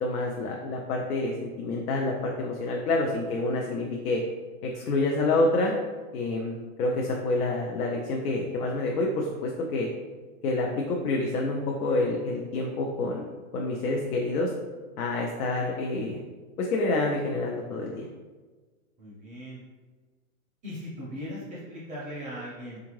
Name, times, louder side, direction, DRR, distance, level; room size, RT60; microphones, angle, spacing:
voice 1, 0.0-4.2 4.6-5.7 6.1-9.9 10.4-13.3 13.5-14.5 15.0-16.2 16.6-18.1, left 2 dB, 90° left, 0 dB, 0.6 m, -28 dB
voice 2, 19.0-19.6 20.6-22.8, equal, 20° right, -6 dB, 0.4 m, -39 dB
3.6 x 2.4 x 3.0 m, 1.4 s
hypercardioid pair, 125°, 44 cm